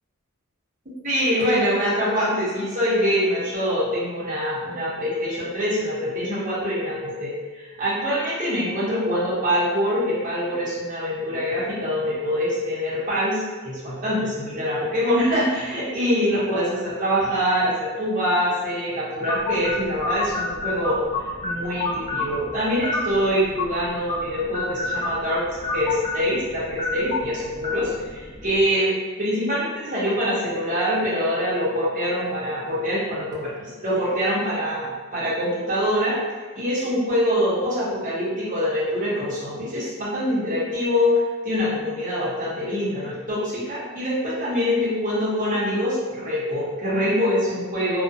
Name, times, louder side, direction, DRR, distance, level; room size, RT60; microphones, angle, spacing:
voice 1, 1.0-21.0 21.4-25.4 25.7-28.9 29.2-36.2 36.6-48.0, equal, 35° right, -9 dB, 0.7 m, -24 dB
sound 1, 19.2-28.7, left 2 dB, 30° left, 0.3 m, -30 dB
2.4 x 2.1 x 2.6 m, 1.4 s
head